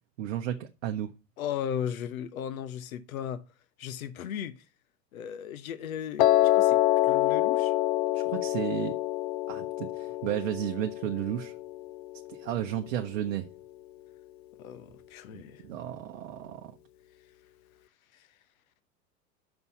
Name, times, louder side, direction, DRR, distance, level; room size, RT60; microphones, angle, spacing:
voice 1, 0.2-1.1 8.1-8.9 9.5-11.5 12.3-13.5 15.3-16.7, right 11 dB, 50° right, 0.9 m, -33 dB
voice 2, 1.4-3.4 3.8-4.6 5.1-6.8 7.0-7.7 14.6-15.6 18.1-18.3, left 9 dB, 60° left, 1.1 m, -36 dB
Piano, 6.2-12.3, left 15 dB, 40° left, 0.5 m, -26 dB
6.0 x 5.4 x 7.0 m
figure-of-eight pair, 95°, 48 cm